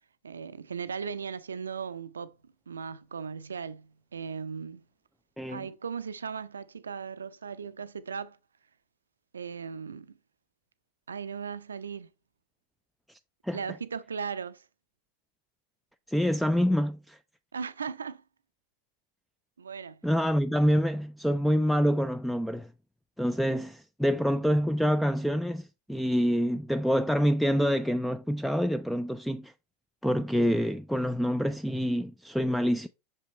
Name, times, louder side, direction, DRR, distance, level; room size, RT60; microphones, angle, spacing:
voice 1, 0.2-2.3 2.7-4.8 5.5-8.4 9.3-10.1 11.1-12.1 13.5-14.6 17.5-18.2 19.6-20.0, right 6 dB, 80° right, 0.4 m, -37 dB
voice 2, 5.4-5.7 13.4-13.6 16.1-17.2 20.0-22.7 23.2-29.5 30.0-32.9, equal, ahead, 0.3 m, -26 dB
6.5 x 5.4 x 3.1 m
figure-of-eight pair, 85°, 0 cm